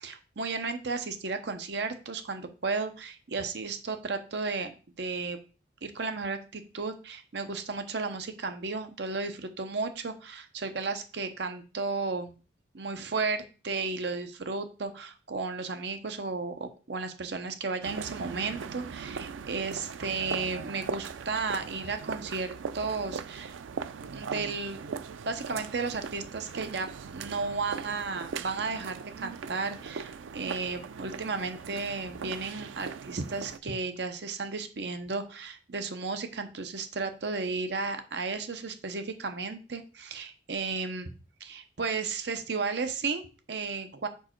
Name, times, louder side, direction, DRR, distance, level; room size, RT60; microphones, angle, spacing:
voice 1, 0.0-5.4 5.8-12.3 12.7-23.6 24.1-24.8 25.3-26.9 27.1-41.1 41.4-44.1, right 4 dB, 65° right, 7 dB, 0.8 m, -34 dB
sound 1, 17.8-33.6, right 6 dB, 90° right, 0.4 m, -39 dB
5.0 x 4.6 x 4.5 m, 0.34 s
head